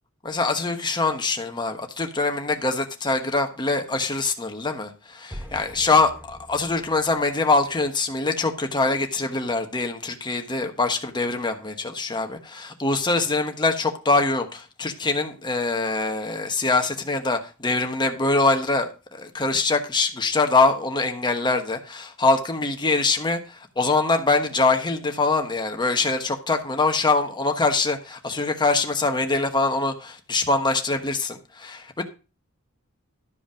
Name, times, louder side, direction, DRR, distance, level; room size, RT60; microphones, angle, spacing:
voice 1, 0.2-32.0, left 3 dB, 20° left, 1.2 m, -23 dB
sound 1, 5.3-8.3, equal, 10° right, 1.1 m, -43 dB
12.5 x 5.0 x 5.0 m
head